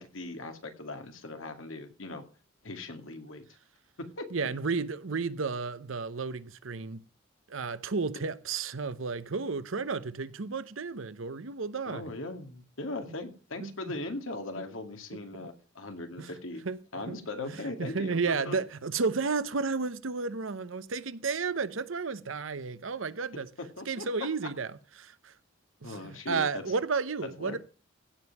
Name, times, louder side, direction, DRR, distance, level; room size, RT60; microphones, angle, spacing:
voice 1, 0.0-2.2 2.6-3.4 4.0-4.3 11.9-16.6 16.9-18.6 23.6-24.1 25.8-26.6 27.4-27.6, left 2 dB, 85° left, 2.1 m, -39 dB
voice 2, 4.3-7.0 7.5-12.0 13.6-13.9 15.4-15.5 16.2-16.3 16.7-16.8 17.1-23.5 23.9-24.7 25.0-25.3 25.8-27.6, right 4 dB, 75° right, 0.8 m, -32 dB
16.0 x 5.4 x 5.9 m
head